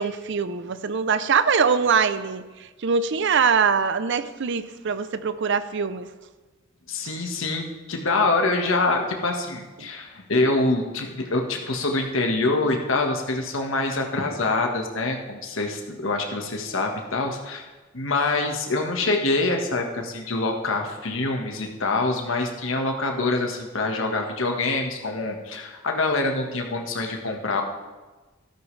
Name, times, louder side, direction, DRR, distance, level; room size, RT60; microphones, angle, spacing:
voice 1, 0.0-2.4 2.8-6.1, right 6 dB, 60° right, 13 dB, 0.6 m, -23 dB
voice 2, 6.9-17.7 17.9-27.6, left 2 dB, 70° left, 2 dB, 1.5 m, -25 dB
13.5 x 13.0 x 3.3 m, 1.2 s
head